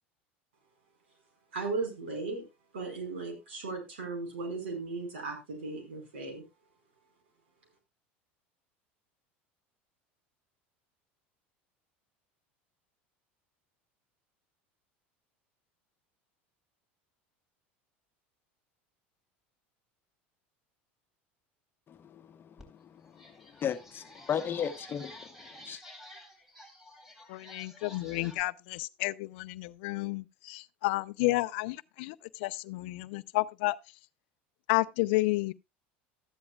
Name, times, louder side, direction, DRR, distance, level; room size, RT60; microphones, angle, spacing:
voice 1, 1.5-2.4 2.7-6.4, right 3 dB, 85° right, 5.0 m, -36 dB
voice 2, 21.9-22.5 22.8-23.2 23.6-25.3 25.6-25.8, left 8 dB, 35° left, 1.1 m, -35 dB
sound 1, 22.6-22.7 23.1-28.4, left 1 dB, 5° right, 3.8 m, -51 dB
voice 3, 27.3-33.8 34.7-35.5, left 21 dB, 70° left, 0.5 m, -31 dB
14.0 x 10.5 x 2.4 m
hypercardioid pair, 90°, 6 cm